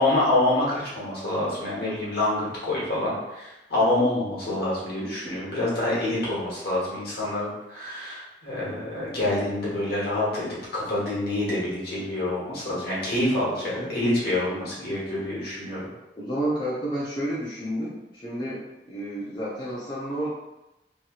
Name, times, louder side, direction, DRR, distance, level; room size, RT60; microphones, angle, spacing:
voice 1, 0.0-15.9, left 1 dB, 60° left, -6 dB, 1.2 m, -26 dB
voice 2, 16.2-20.3, right 1 dB, 25° left, -7 dB, 0.5 m, -31 dB
3.1 x 2.8 x 2.4 m, 0.97 s
head